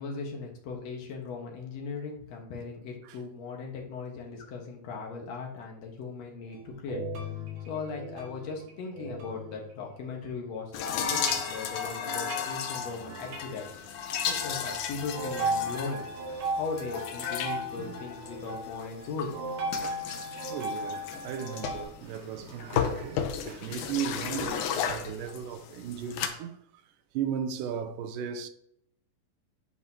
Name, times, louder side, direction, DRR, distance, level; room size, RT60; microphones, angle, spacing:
voice 1, 0.0-7.0 7.6-13.7 14.3-16.1 16.6-19.4, left 4 dB, 60° left, 2.2 m, -38 dB
sound 1, 6.5-10.4 11.0-13.6 14.1-14.4 15.1-21.8, right 1 dB, 60° right, 2.6 m, -37 dB
sound 2, 10.7-26.3, left 8 dB, 75° left, 1.9 m, -35 dB
voice 2, 20.5-26.6 27.1-28.5, right 8 dB, 80° right, 2.1 m, -36 dB
9.7 x 5.0 x 2.8 m
omnidirectional pair, 4.0 m